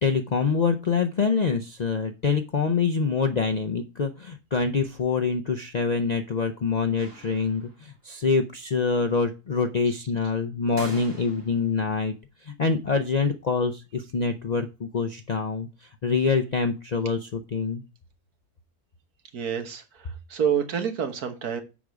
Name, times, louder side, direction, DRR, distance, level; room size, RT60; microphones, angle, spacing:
voice 1, 0.0-12.1 12.4-15.7 16.0-17.8, left 5 dB, 85° left, 4 dB, 0.3 m, -25 dB
sound 1, 7.0-7.9 10.8-11.8, right 2 dB, 55° right, 3.0 m, -43 dB
voice 2, 19.3-21.6, right 8 dB, 75° right, 7 dB, 1.7 m, -28 dB
7.1 x 4.8 x 5.1 m, 0.29 s
omnidirectional pair, 1.6 m